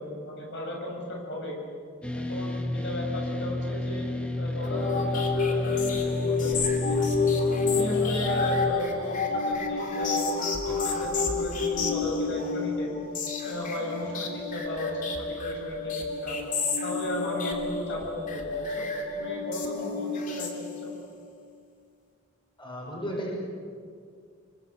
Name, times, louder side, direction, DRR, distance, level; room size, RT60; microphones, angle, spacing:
voice 1, 0.0-1.6 2.1-4.1 4.4-7.1 7.6-12.9 13.4-16.4 16.8-18.9 19.1-20.9, left 1 dB, 65° left, 0 dB, 7.3 m, -35 dB
sound 1, 2.0-8.7, left 1 dB, 5° left, 2.1 m, -31 dB
sound 2, 4.6-21.1, left 4 dB, 45° left, 3.3 m, -29 dB
voice 2, 22.6-23.4, equal, 25° left, -2 dB, 6.3 m, -34 dB
27.0 x 23.5 x 8.0 m, 2.1 s
head